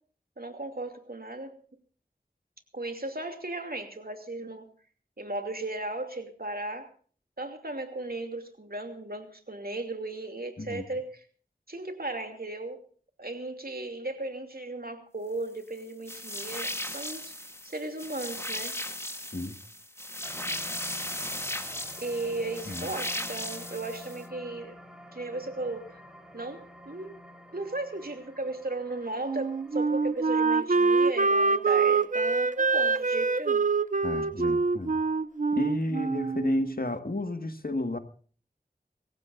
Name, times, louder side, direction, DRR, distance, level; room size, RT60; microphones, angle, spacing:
voice 1, 0.4-1.6 2.7-4.7 5.2-6.9 7.4-11.2 11.7-12.9 13.2-17.4 17.6-18.8 22.0-24.7 25.1-26.0 26.3-27.2 27.5-33.6, right 2 dB, 70° right, 2.8 m, -36 dB
sound 1, 16.1-24.2, left 1 dB, 15° left, 1.6 m, -36 dB
sound 2, 20.2-36.7 37.1-37.2, left 1 dB, 5° right, 4.4 m, -51 dB
Wind instrument woodwind instrument, 29.2-36.8, right 4 dB, 50° right, 0.6 m, -25 dB
voice 2, 34.0-35.0 35.5-38.0, left 2 dB, 65° left, 1.8 m, -32 dB
25.0 x 15.0 x 2.6 m
wide cardioid pair, 40°, 16 cm